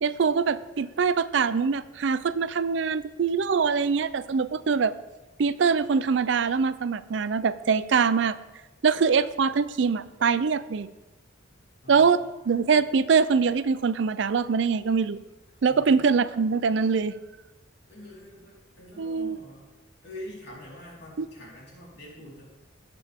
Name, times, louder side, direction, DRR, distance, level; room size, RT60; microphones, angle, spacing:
voice 1, 0.0-4.9 5.4-8.3 8.8-10.9 11.9-15.2 15.6-17.1 19.0-19.4 21.2-21.3, right 5 dB, 65° right, 15 dB, 0.4 m, -23 dB
voice 2, 15.6-16.1 17.9-19.7 20.0-22.4, left 1 dB, 60° left, -5 dB, 4.2 m, -44 dB
18.5 x 6.9 x 3.6 m, 1.1 s
head